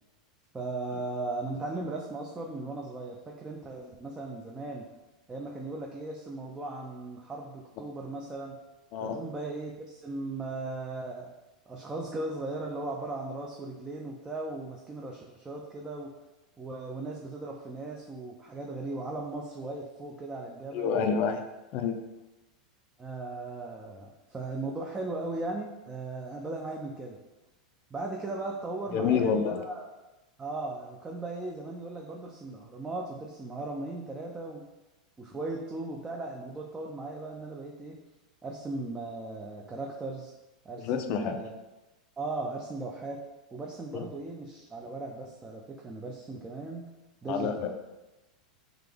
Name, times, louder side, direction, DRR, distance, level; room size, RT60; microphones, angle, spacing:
voice 1, 0.5-4.9 5.3-8.5 9.0-11.3 11.7-16.1 16.6-21.1 23.0-27.2 27.9-29.9 30.4-34.6 35.2-38.0 38.4-40.3 40.6-41.5 42.2-43.2 43.5-46.8 47.2-47.5, right 2 dB, 15° right, -1 dB, 0.5 m, -37 dB
voice 2, 20.7-21.4 21.7-22.0 28.9-29.6 40.7-41.4 43.9-44.1 47.3-47.7, left 6 dB, 50° left, 6 dB, 0.5 m, -28 dB
3.8 x 2.9 x 3.4 m, 1.0 s
hypercardioid pair, 115°, 4 cm